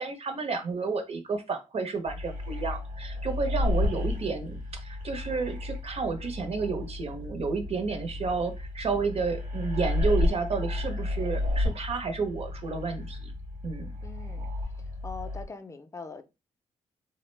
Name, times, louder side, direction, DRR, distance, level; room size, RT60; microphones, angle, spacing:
voice 1, 0.0-13.2 13.6-13.9, right 4 dB, 50° right, 0.7 m, -31 dB
sound 1, 2.1-15.4, left 2 dB, 75° right, 0.9 m, -32 dB
voice 2, 14.0-14.5 15.0-16.2, left 4 dB, 20° left, 0.4 m, -42 dB
2.3 x 2.1 x 3.2 m
cardioid pair, 70°, 13 cm